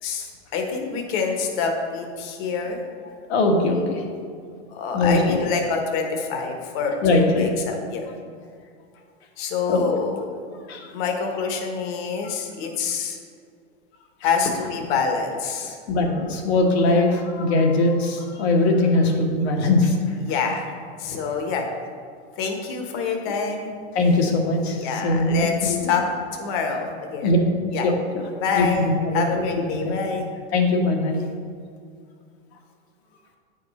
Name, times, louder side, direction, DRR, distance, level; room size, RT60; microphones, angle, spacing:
voice 1, 0.0-2.8 4.7-8.1 9.4-10.2 10.9-13.2 14.2-15.8 16.9-17.1 20.2-20.7 21.0-21.7 22.4-23.8 24.8-26.1 26.4-27.3 27.7-27.8 28.4-28.9 29.1-30.3, left 5 dB, 45° left, 3 dB, 1.2 m, -26 dB
voice 2, 3.3-4.1 4.9-5.4 7.0-7.5 9.7-9.9 10.7-10.9 15.9-20.0 23.9-25.9 27.2-27.4 27.8-27.9 28.5-29.9 30.5-31.2, left 2 dB, 70° left, 2 dB, 1.4 m, -21 dB
8.8 x 5.3 x 4.2 m, 2.2 s
supercardioid pair, 145°, 33 cm